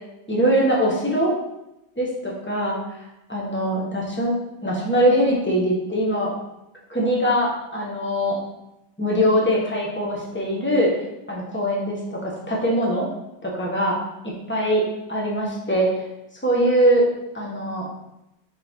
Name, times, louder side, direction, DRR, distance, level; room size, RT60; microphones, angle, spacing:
voice 1, 0.3-1.3 2.0-2.8 3.3-4.3 4.6-6.3 6.9-8.4 9.0-13.1 13.4-14.0 14.2-14.8 15.1-15.9 16.4-17.0 17.3-17.9, equal, 5° left, -4 dB, 1.1 m, -22 dB
6.6 x 4.0 x 3.7 m, 0.88 s
omnidirectional pair, 1.9 m